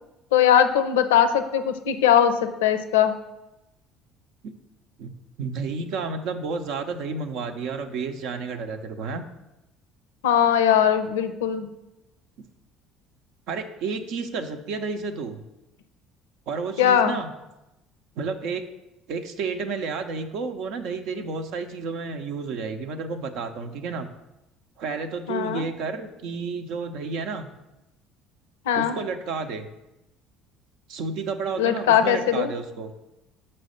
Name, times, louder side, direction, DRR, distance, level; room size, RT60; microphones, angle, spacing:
voice 1, 0.3-3.1 10.2-11.7 16.8-17.2 25.3-25.7 28.7-29.0 31.6-32.5, left 9 dB, 75° left, 10 dB, 0.5 m, -20 dB
voice 2, 5.4-9.2 13.5-15.4 16.5-17.3 18.2-18.6 19.1-24.1 24.8-27.5 28.7-29.7 30.9-32.9, right 4 dB, 65° right, 7 dB, 0.6 m, -31 dB
6.2 x 4.4 x 6.3 m, 0.96 s
hypercardioid pair, 60°, 0 cm